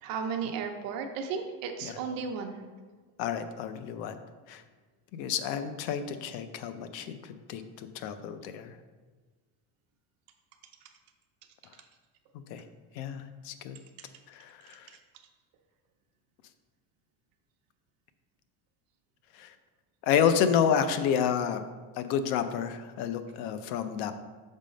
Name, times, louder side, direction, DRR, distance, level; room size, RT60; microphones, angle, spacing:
voice 1, 0.0-2.6, right 6 dB, 45° right, 4 dB, 0.7 m, -34 dB
voice 2, 3.2-4.2 4.5-4.6 5.1-7.1 7.5-7.6 7.9-8.7 12.5-12.6 13.0-13.8 14.3-14.8 19.4-19.5 20.0-21.6 22.0-24.1, left 8 dB, 85° left, 10 dB, 0.7 m, -29 dB
6.4 x 3.7 x 5.1 m, 1.4 s
cardioid pair, 165°, 48 cm